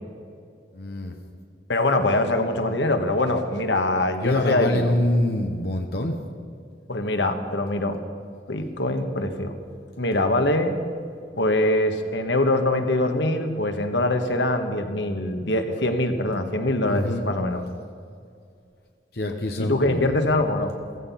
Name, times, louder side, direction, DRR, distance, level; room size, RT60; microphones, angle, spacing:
voice 1, 0.7-1.1 4.2-6.2 16.9-17.3 19.1-20.6, left 1 dB, 60° left, 3 dB, 1.0 m, -26 dB
voice 2, 1.7-4.9 6.9-8.0 8.5-9.5 10.0-10.8 11.4-17.6 19.6-20.7, left 1 dB, 85° left, 6 dB, 1.5 m, -23 dB
15.5 x 15.5 x 5.7 m, 2.3 s
head